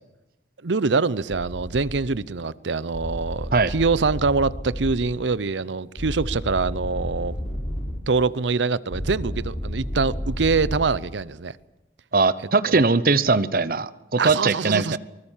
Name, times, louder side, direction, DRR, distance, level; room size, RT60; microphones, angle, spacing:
voice 1, 0.6-7.4 8.1-11.5 12.7-12.9 14.2-15.0, right 4 dB, 85° right, 0.7 m, -24 dB
sound 1, 1.3-2.0 2.9-5.1 6.0-8.0 8.9-10.9, equal, 30° left, 3.6 m, -31 dB
voice 2, 12.1-15.0, right 4 dB, 50° right, 0.8 m, -20 dB
24.0 x 19.5 x 7.3 m
head